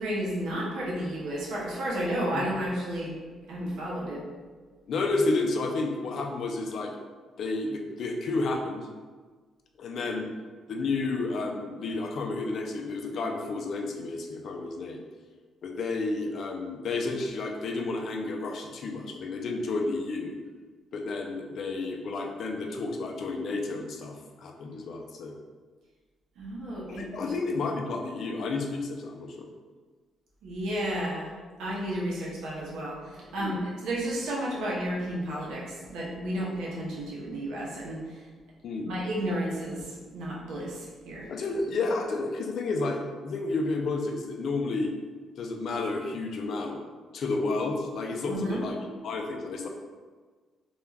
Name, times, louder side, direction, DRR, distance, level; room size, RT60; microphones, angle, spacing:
voice 1, 0.0-3.2 3.5-4.2 26.4-27.3 30.4-31.3 31.6-38.0 38.8-41.3 48.3-48.6, right 1 dB, 90° right, -5 dB, 0.7 m, -32 dB
voice 2, 4.9-6.9 7.4-8.9 9.8-10.3 10.7-15.0 15.6-20.4 20.9-25.3 26.9-29.5 33.4-33.6 38.6-38.9 41.3-44.9 45.4-46.8 47.1-49.7, left 3 dB, 65° left, 2 dB, 0.4 m, -31 dB
2.3 x 2.2 x 3.2 m, 1.4 s
cardioid pair, 90°, 0 cm